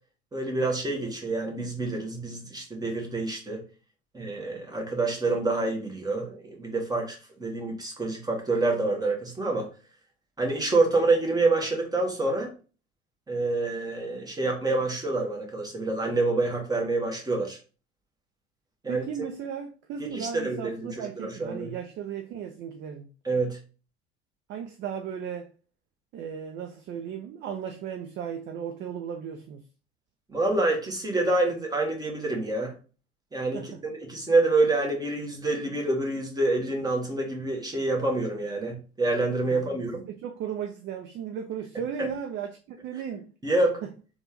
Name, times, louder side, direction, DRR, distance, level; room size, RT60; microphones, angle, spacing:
voice 1, 0.3-3.6 4.1-9.7 10.4-12.5 13.3-17.6 18.8-19.1 20.0-21.7 23.2-23.6 30.3-32.7 33.3-33.7 34.1-40.0 42.0-42.1 43.4-43.8, right 2 dB, 10° right, 1.1 m, -27 dB
voice 2, 18.9-23.1 24.5-25.5 26.1-29.6 33.5-33.7 39.5-43.3, right 8 dB, 35° right, 0.4 m, -36 dB
3.3 x 2.3 x 2.9 m
figure-of-eight pair, 70°, 33 cm